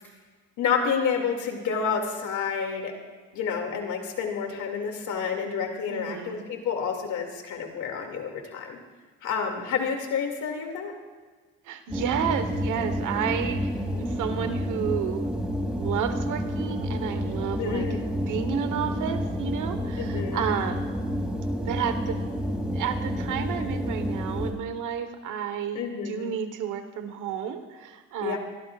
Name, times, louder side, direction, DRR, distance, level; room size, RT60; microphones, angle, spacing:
voice 1, 0.6-2.9 3.3-8.8 9.2-10.9 17.6-18.1 20.0-20.4 25.7-26.3 28.2-28.4, left 6 dB, 80° left, 2 dB, 2.5 m, -29 dB
voice 2, 5.9-6.4 11.6-13.7 14.0-15.2 15.8-17.9 18.2-20.9 21.6-22.2 22.7-28.4, right 8 dB, 85° right, 9 dB, 1.3 m, -31 dB
sound 1, 11.9-24.5, equal, 5° right, 2.8 m, -29 dB
24.0 x 16.0 x 2.5 m, 1.4 s
cardioid pair, 90°, 30 cm